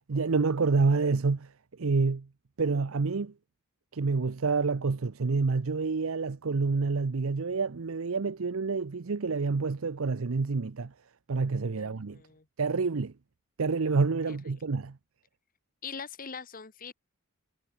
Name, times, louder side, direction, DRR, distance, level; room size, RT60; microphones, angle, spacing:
voice 1, 0.1-1.5 1.8-2.3 2.6-3.3 3.9-10.9 11.3-12.2 12.6-13.1 13.6-15.0, right 4 dB, 65° right, 0.6 m, -28 dB
voice 2, 11.8-12.5 14.3-14.6 15.8-16.9, left 6 dB, 40° left, 1.4 m, -43 dB
head